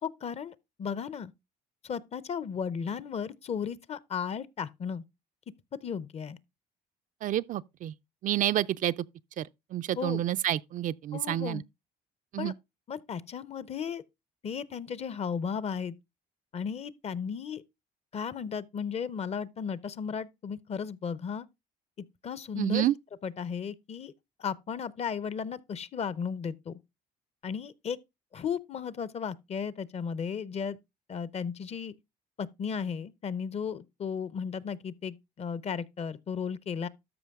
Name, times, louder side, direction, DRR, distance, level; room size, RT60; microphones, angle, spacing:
voice 1, 0.0-1.3 1.8-5.0 5.8-6.4 10.0-10.2 11.1-11.6 12.4-12.5 12.9-14.0 14.4-16.0 16.5-17.6 18.1-21.5 22.2-22.9 23.2-24.1 24.4-26.8 27.4-28.0 28.3-30.8 31.1-31.9 32.4-36.9, left 7 dB, 40° left, 0.6 m, -35 dB
voice 2, 7.2-7.9 8.2-8.9 9.4-11.6 12.3-12.5 22.6-22.9, right 12 dB, 50° right, 0.4 m, -29 dB
13.0 x 5.2 x 3.5 m
cardioid pair, 110°, 17 cm